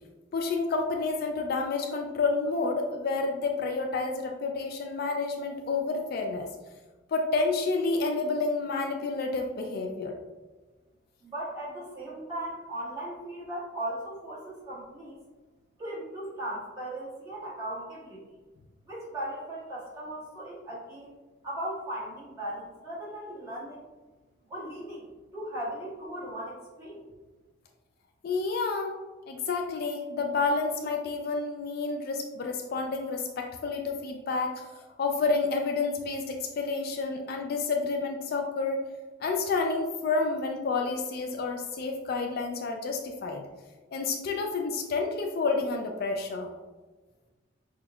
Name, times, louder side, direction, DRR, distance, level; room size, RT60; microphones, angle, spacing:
voice 1, 0.3-6.5 7.1-10.2 28.2-28.9 29.3-38.8 39.2-43.4 43.9-46.5, left 3 dB, 50° left, 3 dB, 0.3 m, -29 dB
voice 2, 11.2-15.2 15.8-18.2 18.9-21.2 21.4-23.8 24.5-25.1 25.3-27.0, right 1 dB, 20° right, -10 dB, 1.5 m, -37 dB
5.8 x 2.3 x 2.3 m, 1.3 s
head